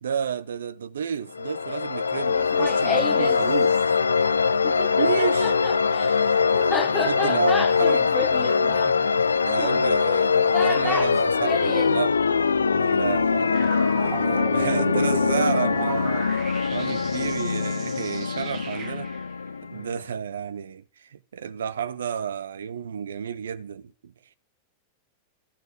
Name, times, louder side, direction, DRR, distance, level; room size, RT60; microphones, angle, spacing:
voice 1, 0.0-3.8 5.0-5.6 7.1-8.1 9.4-12.2 12.8-16.3 16.7-19.1 19.6-24.1, right 8 dB, 75° right, 0.8 m, -31 dB
sound 1, 1.3-20.0, left 5 dB, 85° left, 0.6 m, -23 dB
Laughter, 2.4-3.4 4.6-12.0, left 5 dB, 15° left, 0.7 m, -31 dB
voice 2, 6.3-7.6 8.6-9.4 12.5-13.2 19.7-20.1, right 1 dB, 90° right, 3.8 m, -46 dB
sound 2, 13.5-19.2, right 7 dB, 40° right, 2.5 m, -36 dB
14.0 x 7.9 x 6.8 m
figure-of-eight pair, 95°, 0 cm